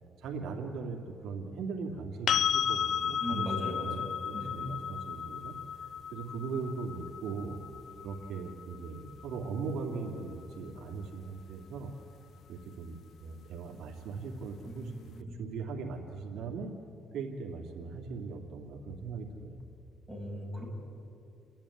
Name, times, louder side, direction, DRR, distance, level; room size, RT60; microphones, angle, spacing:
voice 1, 0.2-3.5 3.8-5.5 6.1-7.6 8.0-11.9 12.5-15.1 15.4-16.7 17.1-19.6, right 4 dB, 75° right, 0 dB, 2.5 m, -39 dB
sound 1, 2.3-10.1 12.9-13.0, left 8 dB, 65° left, 0.5 m, -34 dB
voice 2, 3.2-4.6 14.6-15.0 15.3-15.4 20.1-20.7, equal, 5° left, -2 dB, 6.8 m, -38 dB
29.5 x 10.5 x 9.9 m, 2.7 s
cardioid pair, 95°, 0 cm